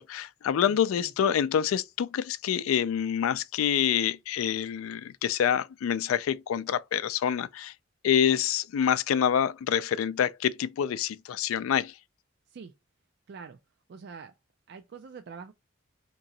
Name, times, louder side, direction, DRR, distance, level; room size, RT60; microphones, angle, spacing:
voice 1, 0.0-7.7 8.0-11.9, left 9 dB, 90° left, 0.3 m, -27 dB
voice 2, 0.7-1.1 12.5-12.7 13.3-13.6 13.9-14.3 14.7-15.5, right 5 dB, 55° right, 0.3 m, -45 dB
3.0 x 2.7 x 3.8 m
head